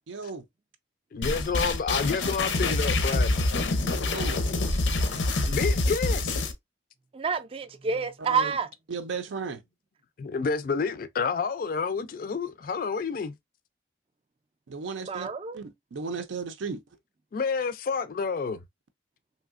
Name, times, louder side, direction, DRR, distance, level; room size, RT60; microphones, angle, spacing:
voice 1, 0.1-0.4 4.1-4.4 8.3-8.5 8.9-9.6 14.7-15.3 15.5-16.8, right 4 dB, 85° right, 0.5 m, -35 dB
voice 2, 1.1-3.4 5.5-6.4 10.2-13.3 17.3-18.6, left 5 dB, 50° left, 0.3 m, -29 dB
sound 1, 1.2-6.5, left 2 dB, 85° left, 0.6 m, -26 dB
voice 3, 7.1-8.7 15.0-15.6, right 5 dB, 30° right, 0.3 m, -28 dB
3.3 x 2.7 x 2.4 m
head